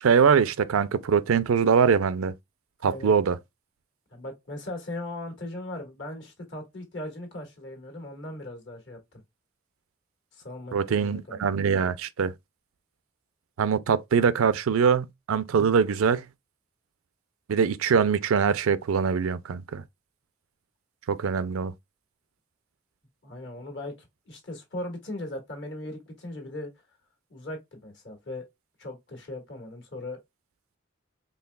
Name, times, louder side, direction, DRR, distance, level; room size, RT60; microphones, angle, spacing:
voice 1, 0.0-2.3 2.8-3.4 10.7-12.3 13.6-16.3 17.5-19.8 21.1-21.7, right 6 dB, 85° right, 0.4 m, -23 dB
voice 2, 2.8-3.1 4.1-9.0 10.3-11.5 23.2-23.9 24.3-26.7 27.3-28.5 28.8-30.2, left 1 dB, 55° left, 1.6 m, -38 dB
4.6 x 3.1 x 2.2 m
head